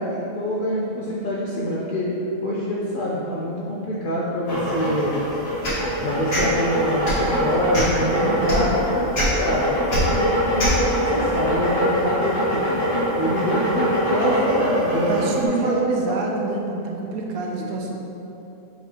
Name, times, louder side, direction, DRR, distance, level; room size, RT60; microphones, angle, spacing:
voice 1, 0.0-2.1 2.4-5.2 6.0-9.7 10.0-12.6 13.2-16.2 17.6-17.7, equal, 70° left, -6 dB, 0.5 m, -25 dB
sound 1, 4.5-15.4, equal, 30° left, 1.0 m, -24 dB
sound 2, 5.6-5.8 6.3-6.4 7.0-7.2 7.7-8.0 8.5-8.6 9.1-9.3 9.9-10.0 10.6-10.7, equal, 45° left, 1.5 m, -24 dB
voice 2, 8.2-8.5 15.1-18.0, right 3 dB, 90° right, 0 dB, 1.1 m, -26 dB
4.4 x 3.9 x 2.9 m, 2.9 s
omnidirectional pair, 1.5 m